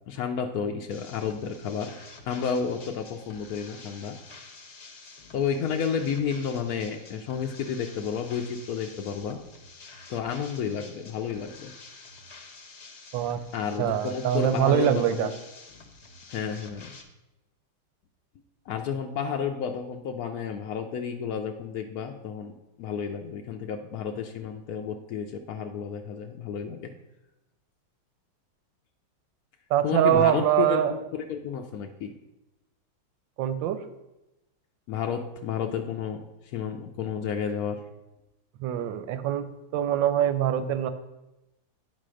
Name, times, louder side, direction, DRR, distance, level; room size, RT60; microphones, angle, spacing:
voice 1, 0.1-1.9 2.3-4.2 5.3-9.4 10.1-11.7 13.5-15.3 16.3-16.9 18.7-26.9 29.8-32.1 34.9-36.2 36.5-37.8 38.8-38.9, left 7 dB, 75° left, 3 dB, 0.8 m, -31 dB
sound 1, 0.9-17.0, left 3 dB, 50° left, 0.9 m, -48 dB
voice 2, 13.8-15.3 29.7-30.9 33.4-33.8 38.6-39.4 39.7-40.9, right 10 dB, 75° right, 10 dB, 1.2 m, -24 dB
9.4 x 4.2 x 6.2 m, 0.97 s
omnidirectional pair, 2.3 m